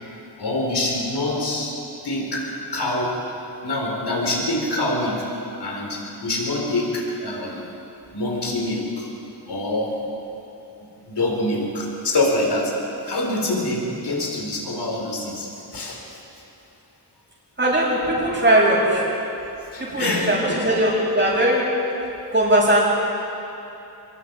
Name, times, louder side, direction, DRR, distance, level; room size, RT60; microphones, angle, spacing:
voice 1, 0.4-1.7 2.0-2.5 2.7-3.2 3.6-5.2 5.6-7.6 8.1-9.1 9.5-10.0 11.1-12.7 13.0-16.0 19.7-20.6, left 2 dB, 75° left, -1 dB, 4.8 m, -25 dB
voice 2, 17.6-19.0 19.8-21.7 22.3-22.9, right 1 dB, 30° right, -10 dB, 6.6 m, -19 dB
26.0 x 22.0 x 4.9 m, 3.0 s
wide cardioid pair, 80°, 41 cm